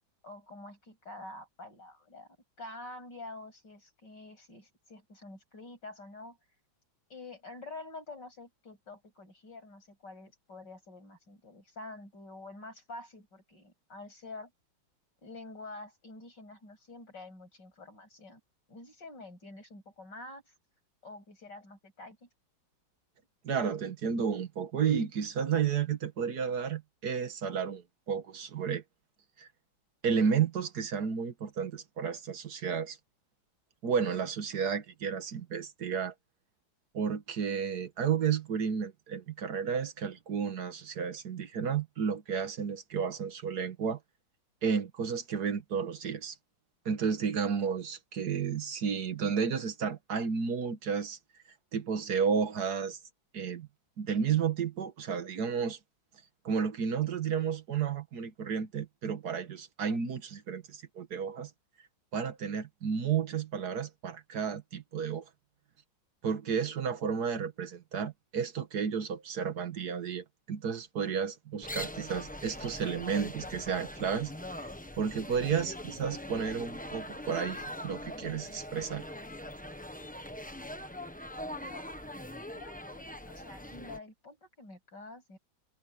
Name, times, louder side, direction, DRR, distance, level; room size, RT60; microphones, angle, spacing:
voice 1, 0.2-2.3 2.6-6.4 7.1-14.5 15.2-18.4 18.7-20.5 21.0-22.3 66.7-66.8 81.2-81.9 82.5-85.4, left 2 dB, 65° left, 8.8 m, -47 dB
voice 2, 23.4-28.8 29.4-29.5 30.0-33.0 33.8-36.1 36.9-44.0 44.6-46.4 46.9-51.2 51.7-53.0 53.3-53.7 54.0-55.8 56.5-61.5 62.1-65.2 66.2-74.3 74.6-74.7 75.0-79.1, right 6 dB, 55° right, 1.8 m, -32 dB
sound 1, 71.6-84.0, left 1 dB, 5° left, 0.8 m, -42 dB
omnidirectional pair, 2.1 m